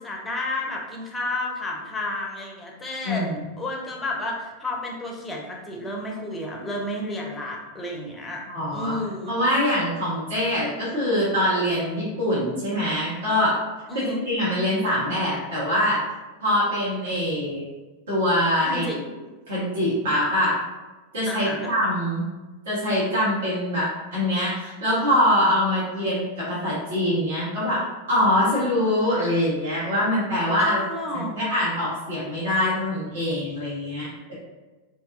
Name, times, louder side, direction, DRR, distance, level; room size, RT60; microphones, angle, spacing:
voice 1, 0.0-3.3 3.6-8.5 8.7-9.3 13.9-14.2 18.6-19.0 21.3-21.7 30.6-31.4, left 1 dB, 15° left, -1 dB, 0.5 m, -31 dB
voice 2, 8.5-9.0 9.3-13.6 13.9-16.0 16.4-17.6 18.1-19.0 19.5-20.6 21.1-22.3 22.6-27.8 28.1-30.8 31.1-34.3, left 1 dB, 60° right, -9 dB, 0.9 m, -24 dB
2.8 x 2.2 x 2.5 m, 1.2 s
figure-of-eight pair, 90°, 0 cm